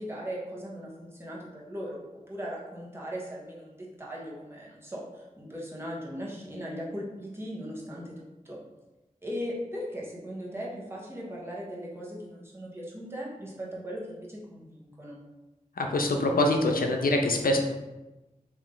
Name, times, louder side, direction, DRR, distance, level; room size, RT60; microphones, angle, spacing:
voice 1, 0.0-2.0 2.3-8.6 9.2-15.2, equal, 15° right, -4 dB, 1.1 m, -38 dB
voice 2, 15.8-17.6, left 2 dB, 90° left, 3 dB, 0.5 m, -24 dB
3.2 x 2.7 x 3.8 m, 1.0 s
wide cardioid pair, 65°, 14 cm